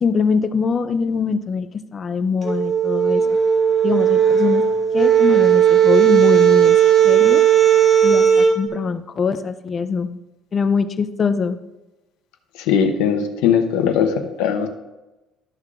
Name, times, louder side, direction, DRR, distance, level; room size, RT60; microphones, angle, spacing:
voice 1, 0.0-3.2 3.8-4.6 4.9-6.8 7.0-7.4 8.0-10.2 10.5-11.6, left 5 dB, 30° left, 11 dB, 0.5 m, -22 dB
sound 1, 2.4-8.6, right 9 dB, 30° right, 1.6 m, -15 dB
voice 2, 12.6-14.7, left 7 dB, 90° left, 5 dB, 0.8 m, -19 dB
12.5 x 6.5 x 2.4 m, 1.0 s
cardioid pair, 145°, 0 cm